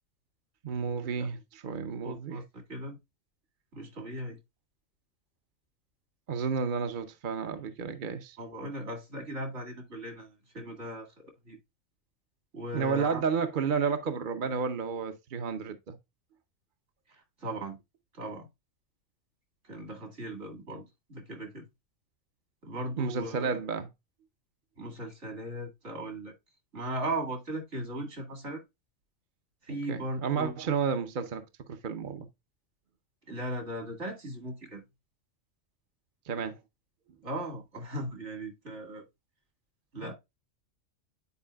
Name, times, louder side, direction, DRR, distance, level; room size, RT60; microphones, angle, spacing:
voice 1, 0.6-2.4 6.3-8.4 12.7-16.0 23.0-23.9 29.9-32.3 36.2-36.6 40.0-40.1, right 6 dB, 45° right, 0.8 m, -31 dB
voice 2, 2.0-3.0 3.7-4.4 8.4-11.6 12.5-13.2 17.1-17.8 18.1-18.5 19.6-21.6 22.6-23.5 24.8-26.3 26.7-28.6 29.6-30.5 33.3-34.8 37.2-39.1 39.9-40.1, right 1 dB, 65° right, 2.3 m, -38 dB
9.6 x 4.7 x 2.3 m
omnidirectional pair, 1.3 m